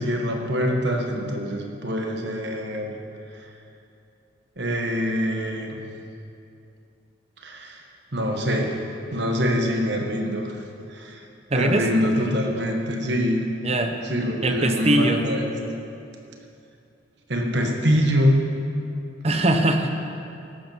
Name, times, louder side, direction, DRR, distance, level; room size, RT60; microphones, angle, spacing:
voice 1, 0.0-2.9 4.6-5.8 7.4-7.8 8.1-8.8 9.1-10.5 10.9-11.2 11.5-13.4 14.1-15.5 17.3-18.4, equal, 60° right, 2 dB, 1.5 m, -24 dB
voice 2, 11.5-11.8 13.6-13.9 14.4-15.2 19.2-19.9, right 1 dB, 30° right, 5 dB, 0.9 m, -21 dB
14.5 x 11.0 x 4.6 m, 2.7 s
head